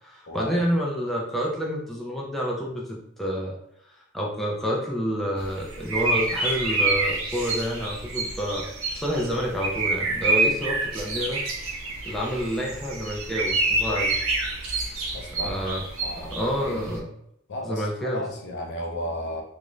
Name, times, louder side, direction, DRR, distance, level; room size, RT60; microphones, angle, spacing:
voice 1, 0.0-3.6 4.1-8.7 8.9-11.4 12.1-14.2 15.3-15.8 16.3-17.1 17.6-18.2, equal, ahead, -3 dB, 0.3 m, -28 dB
sound 1, 5.4-17.0, right 2 dB, 80° right, 0.5 m, -28 dB
voice 2, 15.1-15.6 16.0-16.9 17.5-19.4, left 1 dB, 60° left, 1 dB, 0.5 m, -34 dB
2.4 x 2.1 x 3.0 m, 0.75 s
head